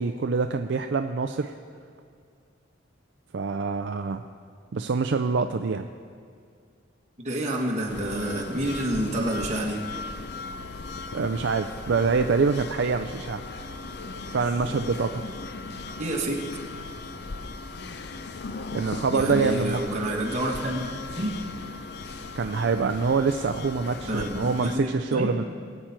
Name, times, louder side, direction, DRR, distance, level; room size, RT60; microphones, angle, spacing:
voice 1, 0.0-1.5 3.3-4.2 4.7-5.9 11.1-13.4 14.3-15.2 18.7-19.8 22.3-25.4, right 4 dB, 65° right, 7 dB, 0.4 m, -25 dB
voice 2, 7.2-9.8 16.0-16.4 19.1-20.9 21.2-21.4 24.1-25.3, right 1 dB, 35° right, -2 dB, 2.0 m, -28 dB
sound 1, 7.9-24.8, left 3 dB, 55° left, 0.6 m, -37 dB
20.5 x 8.8 x 4.5 m, 2.1 s
head